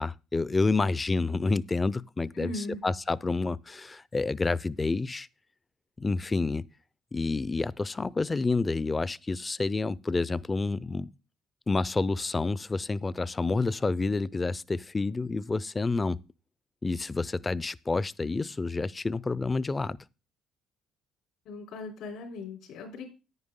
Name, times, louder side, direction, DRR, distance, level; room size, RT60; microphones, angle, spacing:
voice 1, 0.0-2.5 2.8-5.3 6.0-6.7 7.1-11.1 11.7-16.2 16.8-20.0, left 3 dB, 25° left, 0.5 m, -29 dB
voice 2, 2.3-2.8 21.5-23.1, left 2 dB, 80° left, 3.5 m, -38 dB
9.8 x 9.6 x 3.7 m
cardioid pair, 85°, 0 cm